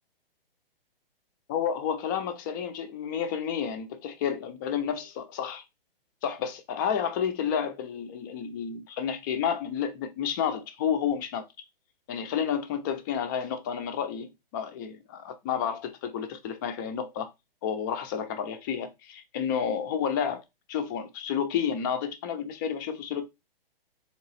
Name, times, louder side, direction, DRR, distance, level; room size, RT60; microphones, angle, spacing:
voice 1, 1.5-5.6 6.2-11.5 12.1-17.3 17.6-20.4 20.7-23.3, left 8 dB, 20° left, 0.5 m, -30 dB
3.6 x 3.0 x 4.0 m
hypercardioid pair, 140°, 29 cm